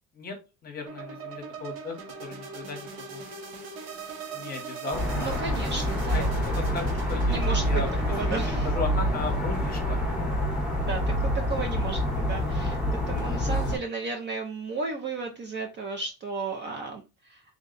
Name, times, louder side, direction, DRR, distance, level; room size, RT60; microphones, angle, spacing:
voice 1, 0.6-1.9 2.2-3.2 4.3-5.0 6.1-6.2 6.5-7.9 8.2-10.0, left 3 dB, 25° left, 3 dB, 1.0 m, -36 dB
sound 1, 0.9-10.5, right 5 dB, 65° right, 1.2 m, -40 dB
sound 2, 4.9-13.8, equal, ahead, 0.9 m, -27 dB
voice 2, 5.1-6.3 7.3-7.8 8.1-8.7 10.8-17.4, right 4 dB, 30° right, 2 dB, 0.5 m, -34 dB
3.7 x 2.2 x 3.8 m, 0.28 s
cardioid pair, 165°, 38 cm